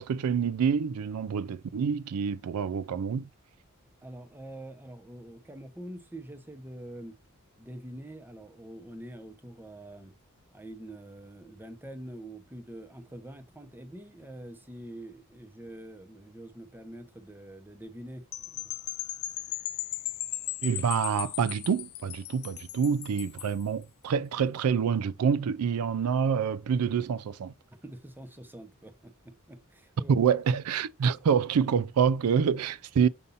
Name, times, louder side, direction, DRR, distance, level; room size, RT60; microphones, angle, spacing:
voice 1, 0.0-3.3 20.6-27.5 30.1-33.1, right 6 dB, 85° right, 0.4 m, -27 dB
voice 2, 4.0-7.2 7.6-10.1 10.5-18.7 27.7-30.1, right 1 dB, 10° right, 0.7 m, -45 dB
sound 1, 18.3-23.6, left 15 dB, 65° left, 0.5 m, -37 dB
6.9 x 2.6 x 5.4 m
head